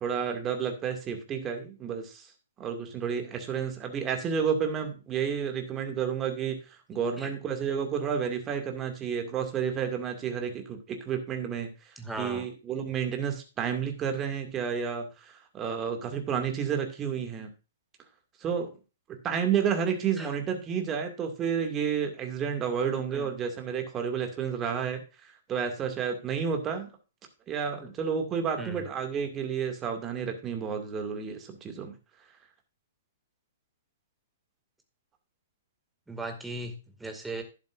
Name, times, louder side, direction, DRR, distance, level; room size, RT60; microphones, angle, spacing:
voice 1, 0.0-2.3 2.6-6.6 6.9-11.7 12.2-17.5 18.4-18.7 19.1-26.9 27.5-32.0, right 7 dB, 20° right, 5 dB, 2.3 m, -31 dB
voice 2, 12.0-12.5 20.2-20.3 23.1-23.3 27.8-27.9 28.6-28.8 36.1-36.7 37.0-37.4, right 2 dB, 5° right, 5 dB, 2.2 m, -37 dB
12.0 x 10.5 x 2.6 m, 0.31 s
figure-of-eight pair, 115°, 0 cm